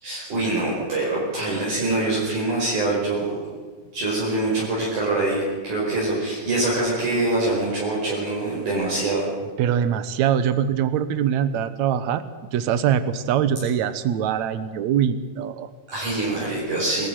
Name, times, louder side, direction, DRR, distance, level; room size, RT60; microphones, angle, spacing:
voice 1, 0.0-3.3 3.9-9.3 15.9-17.1, right 2 dB, 50° right, -5 dB, 6.5 m, -24 dB
voice 2, 9.6-12.2 12.5-15.7, right 9 dB, 70° right, 13 dB, 1.8 m, -23 dB
23.0 x 13.5 x 9.2 m, 1.4 s
omnidirectional pair, 4.5 m